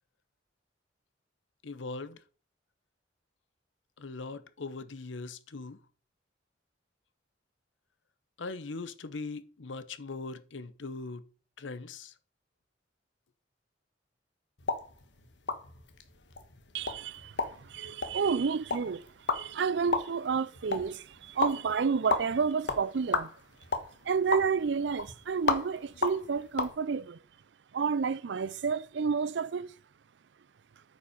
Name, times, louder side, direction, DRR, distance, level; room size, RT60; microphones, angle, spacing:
voice 1, 1.6-2.2 4.0-5.8 8.4-11.3 11.6-12.1, left 3 dB, 90° left, 0.8 m, -40 dB
sound 1, 14.6-26.7, left 3 dB, 75° left, 1.3 m, -35 dB
voice 2, 16.7-23.3 24.0-27.2 27.7-29.7, right 5 dB, 70° right, 0.4 m, -30 dB
8.8 x 5.5 x 5.1 m
head